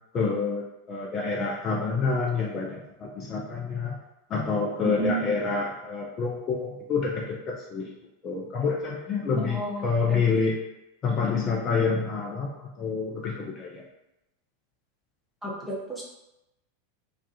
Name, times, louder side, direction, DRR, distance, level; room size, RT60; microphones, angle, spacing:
voice 1, 0.1-4.0 4.3-7.9 8.2-10.5 11.0-13.8, left 4 dB, 30° left, -2 dB, 0.4 m, -28 dB
voice 2, 4.8-5.3 9.3-10.2 15.4-16.0, right 1 dB, 5° right, -5 dB, 0.7 m, -31 dB
2.2 x 2.1 x 2.7 m, 0.92 s
figure-of-eight pair, 90°, 0 cm